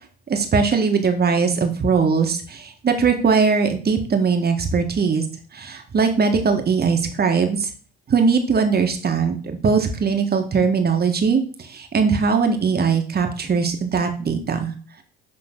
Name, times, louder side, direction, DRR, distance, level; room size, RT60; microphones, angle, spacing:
voice 1, 0.3-5.2 5.5-7.7 8.1-14.7, right 5 dB, 35° right, 5 dB, 1.7 m, -20 dB
11.0 x 3.8 x 3.9 m, 0.41 s
supercardioid pair, 80°, 29 cm